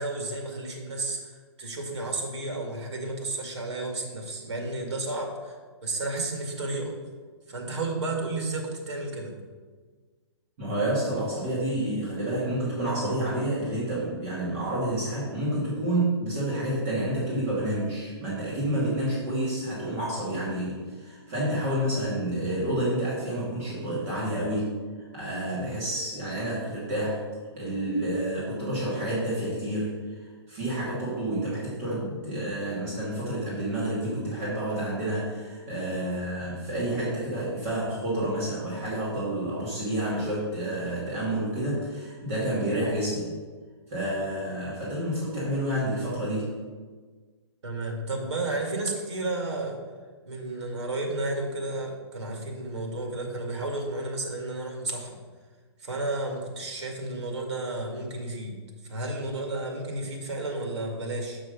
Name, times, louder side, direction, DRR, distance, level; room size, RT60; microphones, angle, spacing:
voice 1, 0.0-1.3 1.6-6.9 7.5-9.3 47.6-49.8 50.3-55.2 55.8-58.6 58.9-61.4, right 2 dB, 85° right, 1 dB, 2.3 m, -32 dB
voice 2, 10.6-24.7 25.1-27.2 27.6-43.3 43.9-46.5, right 1 dB, 30° right, -7 dB, 2.3 m, -29 dB
6.3 x 5.9 x 5.4 m, 1.5 s
hypercardioid pair, 165°, 14 cm